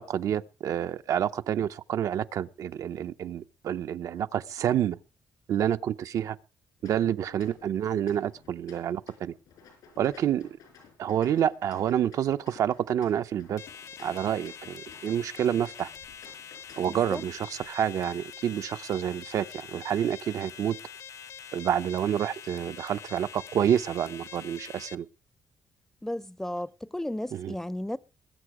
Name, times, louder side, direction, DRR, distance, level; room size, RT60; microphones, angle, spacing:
voice 1, 0.0-5.0 5.5-6.4 6.8-9.3 10.0-10.6 11.0-13.6 14.0-15.9 16.8-20.8 21.5-25.1 27.3-27.5, right 9 dB, 70° right, 0.6 m, -28 dB
sound 1, 6.8-17.6, left 6 dB, 85° left, 5.7 m, -54 dB
sound 2, 13.6-24.9, left 8 dB, 65° left, 0.9 m, -45 dB
voice 2, 16.9-17.2 26.0-28.0, left 1 dB, 5° left, 0.6 m, -34 dB
21.0 x 7.8 x 4.8 m
cardioid pair, 90°, 6 cm